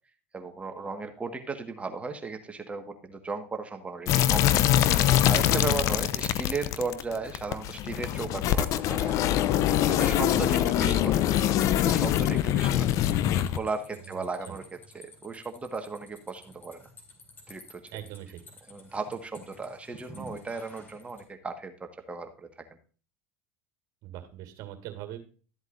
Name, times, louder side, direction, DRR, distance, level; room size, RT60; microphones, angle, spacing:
voice 1, 0.3-9.2 9.8-11.1 11.7-13.2 13.5-14.6 15.2-16.8 17.5-17.8 18.7-22.5, right 4 dB, 20° right, 6 dB, 1.5 m, -36 dB
sound 1, 4.1-13.6, left 12 dB, 50° left, 0.7 m, -24 dB
sound 2, 8.6-21.2, left 1 dB, 30° left, 3.6 m, -51 dB
voice 2, 10.2-11.2 14.0-14.6 17.9-18.4 24.0-25.2, right 12 dB, 55° right, 8 dB, 2.2 m, -42 dB
13.0 x 8.0 x 2.5 m, 0.38 s
hypercardioid pair, 90°, 7 cm